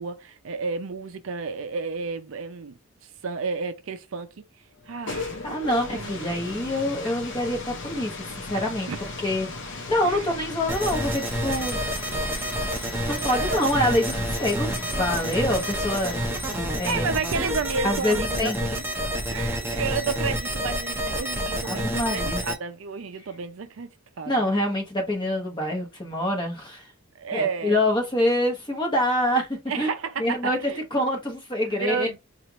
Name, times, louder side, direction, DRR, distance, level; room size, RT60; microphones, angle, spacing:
voice 1, 0.0-2.7 3.2-4.4 4.9-5.5 5.9-6.4 8.9-9.1 10.0-10.3 13.1-13.7 16.9-18.8 19.3-23.9 24.2-24.3 27.2-27.8 29.7-30.8 31.6-32.2, right 5 dB, 60° right, 0.5 m, -31 dB
sound 1, 4.8-21.5, left 3 dB, 55° left, 0.8 m, -38 dB
voice 2, 5.4-8.9 9.2-11.8 13.0-16.2 16.7-17.1 17.8-18.6 21.6-22.4 24.3-26.9 27.3-29.9 30.2-30.6 30.9-32.2, left 1 dB, 20° left, 1.1 m, -26 dB
sound 2, 10.7-22.5, equal, 10° right, 0.6 m, -29 dB
4.4 x 2.5 x 2.9 m
head